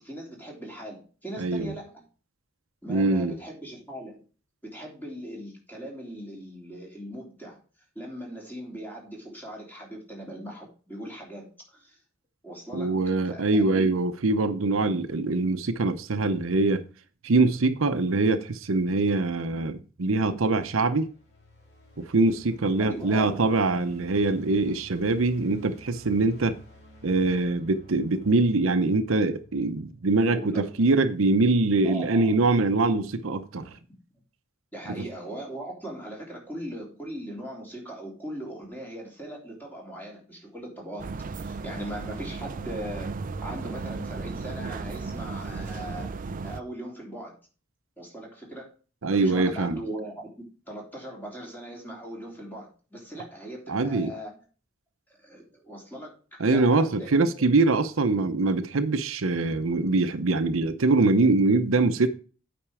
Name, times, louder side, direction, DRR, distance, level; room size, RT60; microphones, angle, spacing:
voice 1, 0.0-2.0 2.8-4.2 4.6-7.6 7.9-12.0 12.4-13.0 13.3-14.0 22.8-23.6 27.5-27.6 30.3-30.8 31.8-32.3 34.7-41.1 41.4-43.1 43.4-46.1 46.4-47.3 48.0-48.7 49.1-54.4 55.1-57.3 58.1-58.4, right 1 dB, 10° left, 3.2 m, -39 dB
voice 2, 1.4-1.7 2.9-3.4 12.7-16.8 17.2-21.1 22.0-26.6 27.0-33.8 49.0-49.8 53.7-54.1 56.4-62.1, right 3 dB, 80° right, 0.7 m, -23 dB
sound 1, 20.4-30.4, left 1 dB, 55° left, 2.6 m, -53 dB
sound 2, 41.0-46.6, right 4 dB, 40° right, 0.4 m, -35 dB
8.9 x 5.2 x 4.8 m
head